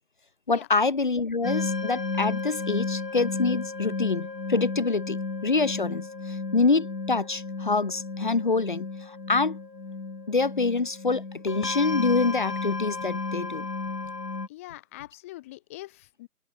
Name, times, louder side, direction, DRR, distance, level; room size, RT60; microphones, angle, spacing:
voice 1, 0.5-9.6 10.3-13.7, left 3 dB, 30° left, 1.8 m, -26 dB
sound 1, 1.4-14.5, left 3 dB, 85° left, 4.0 m, -33 dB
voice 2, 14.5-16.3, left 17 dB, 10° left, 3.4 m, -43 dB
figure-of-eight pair, 175°, 48 cm